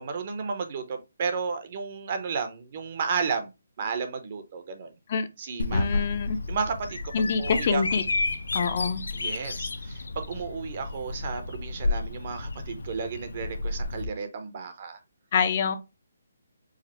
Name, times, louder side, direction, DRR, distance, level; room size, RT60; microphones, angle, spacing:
voice 1, 0.0-3.5 3.8-4.9 5.4-6.1 6.5-7.8 9.1-15.0, right 5 dB, 40° right, 0.7 m, -33 dB
Bird vocalization bird call bird song, 5.6-14.0, left 3 dB, 85° left, 0.6 m, -31 dB
voice 2, 5.7-6.4 7.1-8.0 8.5-9.0 15.3-15.8, left 5 dB, 40° left, 0.5 m, -25 dB
4.8 x 2.0 x 4.2 m
hypercardioid pair, 165°, 0 cm